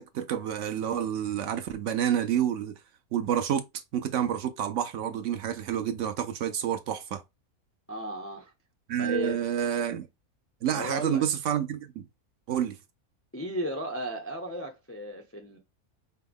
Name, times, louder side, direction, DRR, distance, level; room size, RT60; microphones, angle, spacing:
voice 1, 0.0-2.7 3.1-3.6 3.9-7.2 8.9-10.1 10.6-12.1 12.5-12.8, right 9 dB, 65° right, 0.8 m, -29 dB
voice 2, 7.9-8.5 9.0-9.4 10.7-11.2 13.3-15.6, equal, 20° left, 0.3 m, -35 dB
5.4 x 2.1 x 3.4 m
omnidirectional pair, 1.5 m